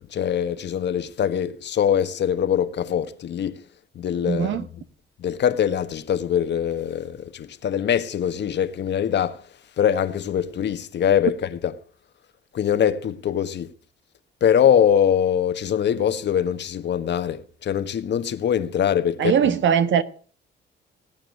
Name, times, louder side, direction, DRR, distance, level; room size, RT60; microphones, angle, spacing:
voice 1, 0.1-3.6 3.9-4.7 5.2-9.4 9.8-11.7 12.5-13.7 14.4-19.5, left 9 dB, 60° left, 1.4 m, -23 dB
voice 2, 4.3-4.7 19.2-20.0, right 8 dB, 70° right, 1.3 m, -20 dB
18.5 x 9.1 x 6.4 m
cardioid pair, 90°, 20 cm